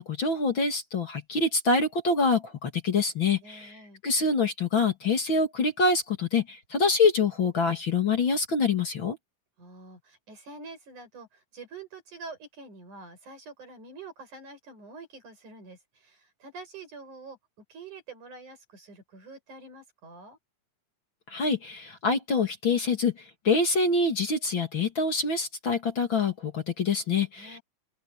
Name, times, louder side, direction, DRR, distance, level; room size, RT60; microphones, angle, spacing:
voice 1, 0.0-9.2 21.3-27.6, left 4 dB, 40° left, 2.9 m, -26 dB
voice 2, 3.4-4.0 9.6-17.4 17.7-20.4 27.4-27.6, right 3 dB, 80° right, 8.0 m, -46 dB
open air
omnidirectional pair, 3.5 m